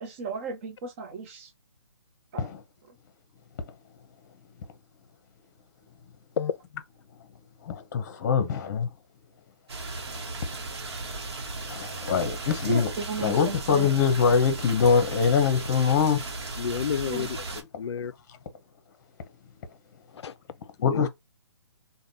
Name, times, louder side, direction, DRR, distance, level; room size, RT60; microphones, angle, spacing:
voice 1, 0.0-1.5 2.3-2.5 12.7-13.9 17.1-17.3, right 5 dB, 25° right, 0.6 m, -34 dB
voice 2, 7.7-8.9 11.7-12.9 13.2-16.2 20.8-21.1, left 6 dB, 40° left, 0.8 m, -23 dB
sound 1, 9.7-17.6, right 3 dB, 65° right, 1.0 m, -36 dB
voice 3, 16.6-18.1 20.2-20.3 20.8-21.1, left 7 dB, 70° left, 0.4 m, -30 dB
3.4 x 2.2 x 2.7 m
hypercardioid pair, 150°, 15 cm